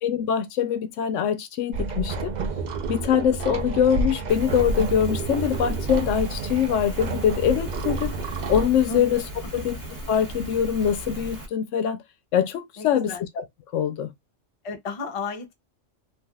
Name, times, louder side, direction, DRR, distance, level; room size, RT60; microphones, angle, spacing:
voice 1, 0.0-2.3 2.9-8.1 8.5-9.2 9.5-9.8 10.1-12.0 12.3-13.4 13.7-14.1, left 8 dB, 75° left, 0.9 m, -23 dB
sound 1, 1.7-8.7, right 3 dB, 60° right, 0.4 m, -29 dB
Rain, 4.3-11.5, right 1 dB, 15° right, 0.9 m, -37 dB
voice 2, 12.8-13.2 14.6-15.5, left 4 dB, 40° left, 0.5 m, -33 dB
3.3 x 2.4 x 2.3 m
omnidirectional pair, 1.3 m